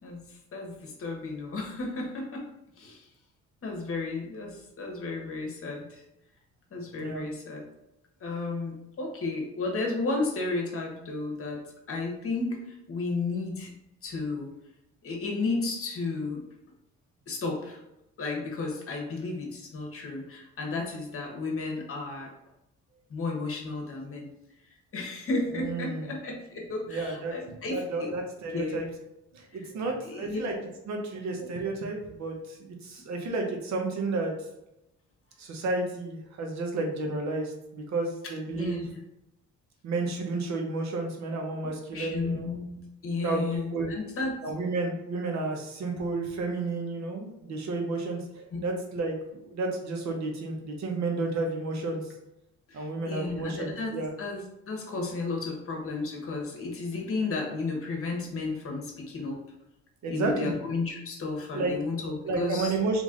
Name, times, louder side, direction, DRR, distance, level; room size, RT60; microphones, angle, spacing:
voice 1, 0.0-2.5 2.8-3.0 3.6-6.0 6.7-7.6 8.2-11.6 11.9-13.7 14.0-14.5 15.0-16.4 17.3-17.8 18.2-22.3 23.1-24.3 24.9-28.1 28.5-28.9 29.5-29.7 30.0-30.4 38.5-39.0 41.9-44.3 48.5-48.6 52.7-54.4 54.7-59.4 60.1-62.7, left 3 dB, 45° left, 1 dB, 1.3 m, -33 dB
voice 2, 25.5-26.1 26.9-28.8 29.3-34.3 35.4-38.8 39.8-42.6 43.2-43.4 43.7-43.9 44.4-48.2 48.6-49.1 49.4-52.0 52.7-54.1 60.0-60.5 61.5-61.7 62.2-63.0, right 3 dB, 65° right, 2 dB, 1.0 m, -31 dB
3.4 x 3.1 x 3.8 m, 0.85 s
cardioid pair, 90°, 30 cm